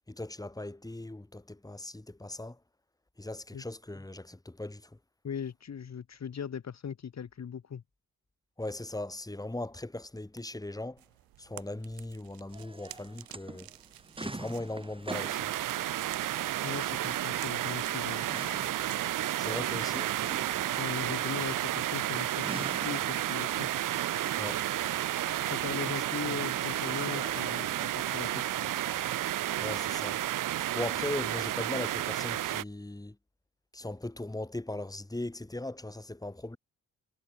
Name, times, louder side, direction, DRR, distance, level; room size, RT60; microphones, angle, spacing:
voice 1, 0.1-2.6 3.2-5.0 8.6-11.0 11.4-13.7 14.2-15.5 19.4-20.2 24.4-24.6 25.9-26.0 29.6-30.2 30.5-33.2 33.7-36.6, left 2 dB, 10° left, 3.2 m, -39 dB
voice 2, 5.2-7.8 16.6-18.3 20.8-23.7 25.5-28.7, left 7 dB, 50° left, 2.6 m, -39 dB
sound 1, 11.0-22.0, right 16 dB, 80° right, 6.7 m, -53 dB
sound 2, 12.5-29.9, right 2 dB, 15° right, 2.6 m, -47 dB
sound 3, 15.1-32.6, right 13 dB, 65° right, 1.0 m, -32 dB
supercardioid pair, 55°, 35 cm